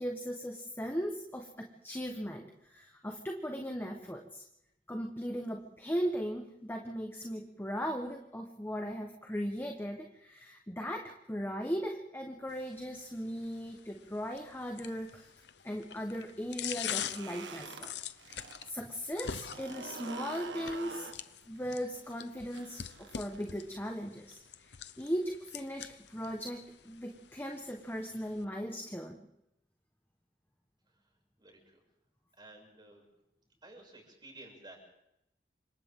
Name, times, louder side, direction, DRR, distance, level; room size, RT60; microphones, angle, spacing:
voice 1, 0.0-4.4 4.9-15.3 15.6-17.9 18.2-18.4 18.6-21.1 21.5-22.8 23.1-29.3, equal, 10° left, 2 dB, 1.4 m, -38 dB
sound 1, 12.5-28.4, left 9 dB, 70° left, 0.8 m, -45 dB
sound 2, 16.8-18.7 19.0-23.7, right 4 dB, 85° right, 1.7 m, -46 dB
voice 2, 31.4-31.8 32.4-33.0 33.6-34.9, right 2 dB, 25° right, 0 dB, 7.2 m, -53 dB
29.5 x 26.0 x 3.8 m, 0.83 s
head